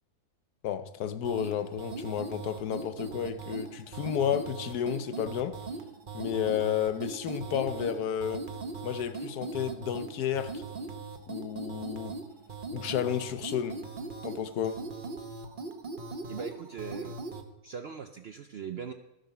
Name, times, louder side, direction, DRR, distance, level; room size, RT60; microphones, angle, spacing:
voice 1, 0.6-5.6 6.1-8.5 8.8-10.6 11.3-12.2 12.7-13.8 14.2-14.8, left 9 dB, 80° left, 1.3 m, -32 dB
sound 1, 1.2-17.5, right 3 dB, 40° right, 1.0 m, -40 dB
voice 2, 16.3-17.1 17.6-18.9, right 7 dB, 60° right, 0.6 m, -40 dB
14.0 x 7.6 x 5.8 m
omnidirectional pair, 1.7 m